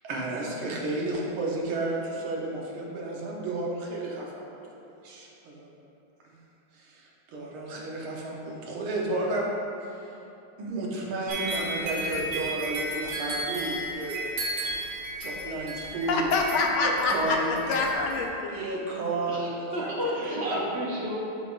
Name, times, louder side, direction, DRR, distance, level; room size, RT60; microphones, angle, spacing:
voice 1, 0.0-4.5 5.0-5.7 6.2-6.4 6.7-9.5 9.9-10.0 10.6-14.1 15.2-16.3 16.8-17.9 18.5-19.9 20.3-20.6, right 2 dB, 85° right, -3 dB, 1.8 m, -32 dB
sound 1, 11.3-18.3, right 1 dB, 45° right, 1.7 m, -34 dB
voice 2, 16.1-18.5, left 3 dB, 85° left, 1 dB, 1.5 m, -26 dB
voice 3, 19.3-21.2, equal, 65° right, -5 dB, 0.6 m, -31 dB
11.5 x 4.0 x 2.5 m, 2.9 s
omnidirectional pair, 2.2 m